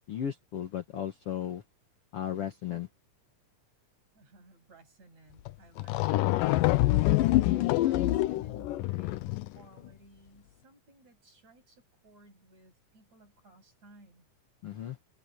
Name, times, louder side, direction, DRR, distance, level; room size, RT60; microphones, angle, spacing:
voice 1, 0.1-1.6 2.1-2.9 14.6-15.0, left 9 dB, 55° left, 1.7 m, -35 dB
voice 2, 4.1-6.7 7.4-14.3, right 2 dB, 50° right, 8.3 m, -58 dB
sound 1, 5.5-5.6 5.8-9.6, left 16 dB, 85° left, 2.3 m, -26 dB
omnidirectional pair, 4.0 m